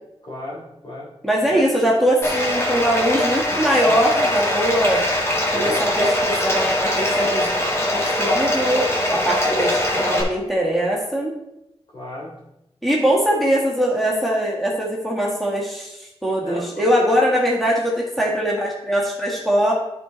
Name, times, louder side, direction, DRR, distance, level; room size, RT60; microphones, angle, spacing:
voice 1, 0.2-1.1 1.4-1.6 5.5-5.8 11.9-12.3 16.4-17.1, left 1 dB, 55° left, -5 dB, 3.2 m, -32 dB
voice 2, 1.2-5.0 5.5-7.6 7.9-11.3 12.8-19.7, equal, ahead, -4 dB, 1.7 m, -21 dB
Bathtub (filling or washing), 2.2-10.2, left 1 dB, 25° left, 1.9 m, -22 dB
10.5 x 4.4 x 3.9 m, 0.88 s
wide cardioid pair, 75°, 10 cm